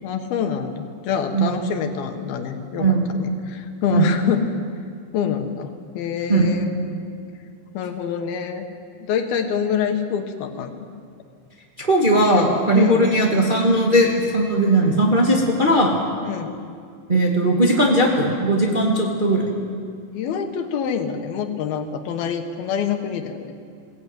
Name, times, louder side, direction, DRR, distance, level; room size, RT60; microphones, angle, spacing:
voice 1, 0.0-4.5 5.1-6.7 7.7-8.6 9.0-10.9 12.7-13.1 16.2-16.6 20.1-23.5, left 7 dB, 85° left, 6 dB, 3.3 m, -26 dB
voice 2, 11.8-15.9 17.1-19.4, right 1 dB, 20° right, -1 dB, 1.5 m, -18 dB
21.5 x 16.0 x 9.1 m, 2.2 s
omnidirectional pair, 4.2 m